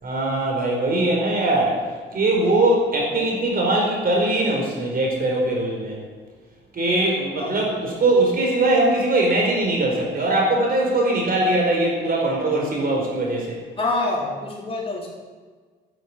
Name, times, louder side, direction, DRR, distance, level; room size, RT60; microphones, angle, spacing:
voice 1, 0.0-1.8 2.1-5.9 6.7-13.6, right 2 dB, 50° right, -1 dB, 4.9 m, -21 dB
voice 2, 13.8-15.1, left 2 dB, 30° left, -3 dB, 3.8 m, -26 dB
11.0 x 9.0 x 8.5 m, 1.5 s
cardioid pair, 90°, 20 cm